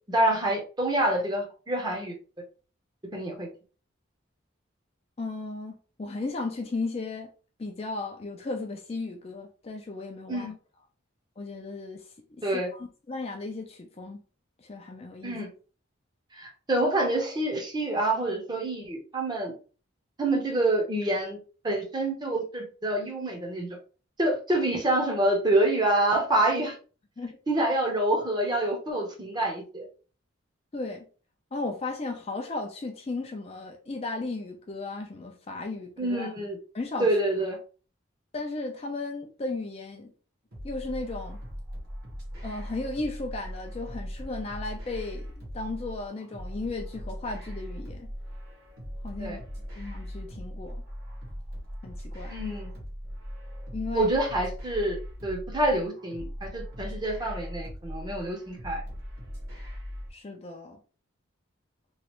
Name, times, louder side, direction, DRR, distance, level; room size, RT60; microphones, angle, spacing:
voice 1, 0.1-2.1 3.1-3.5 10.3-10.5 12.4-12.7 15.2-15.5 16.4-19.5 20.2-21.4 21.6-23.7 24.2-26.8 27.5-29.9 36.0-36.6 37.0-37.6 49.2-49.4 52.3-52.7 53.9-58.8, right 1 dB, 20° right, 0.7 m, -27 dB
voice 2, 5.2-7.3 7.6-10.5 11.4-12.4 12.7-14.2 14.6-15.4 27.2-27.4 30.7-31.1 31.5-36.3 36.7-37.1 38.3-40.1 40.6-41.4 42.4-48.1 49.0-49.4 49.8-50.8 51.8-52.4 53.7-54.1 60.1-60.8, left 3 dB, 30° left, 0.4 m, -35 dB
sound 1, 40.5-60.1, equal, 50° right, 1.1 m, -39 dB
3.1 x 2.4 x 3.0 m
head